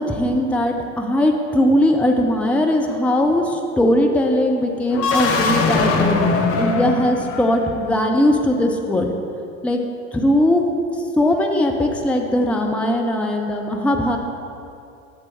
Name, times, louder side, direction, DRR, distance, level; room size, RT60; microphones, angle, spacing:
voice 1, 0.0-9.1 9.6-9.8 10.1-10.6 11.2-14.2, left 1 dB, 5° left, 3 dB, 0.5 m, -19 dB
sound 1, 4.9-7.9, left 4 dB, 35° left, 0.9 m, -21 dB
10.5 x 7.5 x 3.2 m, 2.6 s
figure-of-eight pair, 70°, 41 cm